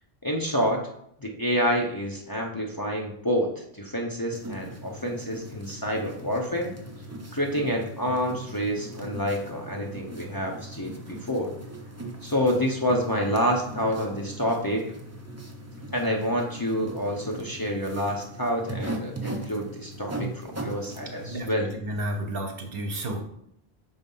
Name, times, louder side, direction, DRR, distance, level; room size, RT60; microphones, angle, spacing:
voice 1, 0.2-0.8 1.2-6.7 7.3-11.5 12.2-14.9 15.9-21.7, equal, 25° left, -1 dB, 0.7 m, -28 dB
sound 1, 4.3-21.4, right 1 dB, 15° right, 0.7 m, -39 dB
voice 2, 21.2-23.2, right 1 dB, 65° right, 4 dB, 1.2 m, -32 dB
5.6 x 4.1 x 5.4 m, 0.72 s
omnidirectional pair, 1.1 m